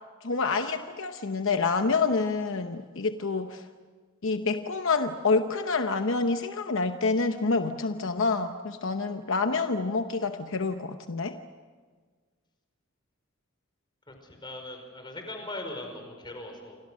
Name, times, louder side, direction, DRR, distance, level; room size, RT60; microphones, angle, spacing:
voice 1, 0.2-3.6 4.2-11.4, left 4 dB, 65° left, 7 dB, 0.9 m, -27 dB
voice 2, 14.1-16.8, left 1 dB, 20° left, 4 dB, 5.1 m, -40 dB
28.5 x 25.5 x 6.4 m, 1.5 s
head